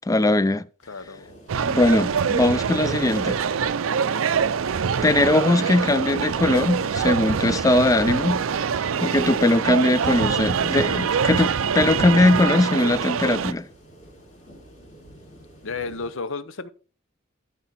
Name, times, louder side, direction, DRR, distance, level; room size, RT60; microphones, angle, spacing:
voice 1, 0.1-0.7 1.6-3.4 5.0-8.4 9.0-13.7, left 2 dB, 15° left, 0.4 m, -20 dB
sound 1, 0.8-16.1, right 1 dB, 40° left, 3.5 m, -51 dB
voice 2, 0.9-1.6 15.6-16.7, left 4 dB, 70° left, 0.8 m, -33 dB
sound 2, 1.5-13.5, right 6 dB, 75° right, 0.5 m, -24 dB
13.0 x 4.9 x 4.2 m
head